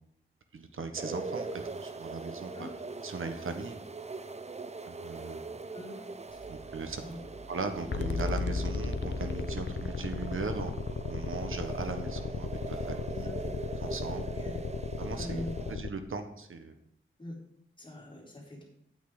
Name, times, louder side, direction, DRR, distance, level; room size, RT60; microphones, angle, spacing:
voice 1, 0.5-1.5 1.8-2.7 3.0-3.8 4.9-5.4 6.5-10.7 11.1-13.3 13.8-14.2 15.0-16.7, right 4 dB, 75° right, 7 dB, 1.3 m, -38 dB
sound 1, 1.0-15.8, right 3 dB, 30° right, 0.6 m, -42 dB
sound 2, 6.3-13.8, right 3 dB, 50° right, 2.7 m, -52 dB
voice 2, 7.0-7.3 13.1-13.6 14.2-14.7 15.1-15.7 17.2-17.4 17.8-18.6, left 1 dB, 25° left, -3 dB, 3.9 m, -43 dB
sound 3, 7.9-15.9, left 4 dB, 60° left, 0.7 m, -35 dB
9.2 x 8.6 x 5.0 m, 0.72 s
wide cardioid pair, 95°, 21 cm